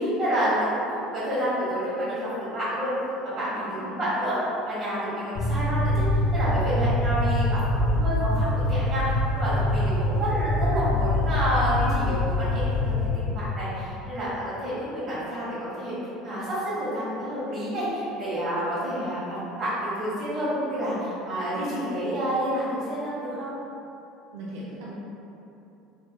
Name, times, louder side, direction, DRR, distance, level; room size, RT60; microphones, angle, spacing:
voice 1, 0.0-2.9 3.2-4.4 4.6-6.0 6.3-15.9 16.2-23.5, equal, 20° right, -11 dB, 1.2 m, -29 dB
voice 2, 3.4-4.1 24.3-24.9, right 1 dB, 65° right, -6 dB, 0.5 m, -39 dB
sound 1, 5.4-13.1, left 1 dB, 35° left, 0.4 m, -24 dB
3.4 x 3.2 x 2.3 m, 2.9 s
cardioid pair, 175°, 0 cm